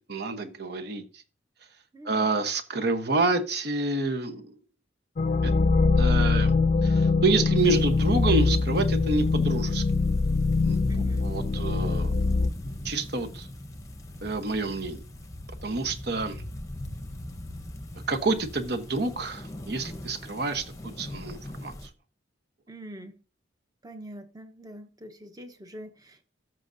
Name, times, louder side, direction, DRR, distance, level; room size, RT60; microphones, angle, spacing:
voice 1, 0.1-1.2 2.0-4.5 5.4-5.5 6.0-6.6 6.8-9.8 10.6-12.1 12.8-13.5 14.2-15.0 15.6-16.4 18.1-20.6 21.0-21.9, right 3 dB, 55° right, 1.0 m, -28 dB
voice 2, 1.9-2.3 10.9-11.3 22.7-23.2 23.8-26.2, right 1 dB, 20° right, 0.9 m, -44 dB
sound 1, 5.2-12.5, left 3 dB, 40° left, 0.3 m, -23 dB
sound 2, 7.6-21.9, left 1 dB, 15° left, 0.8 m, -40 dB
13.5 x 6.2 x 2.6 m
head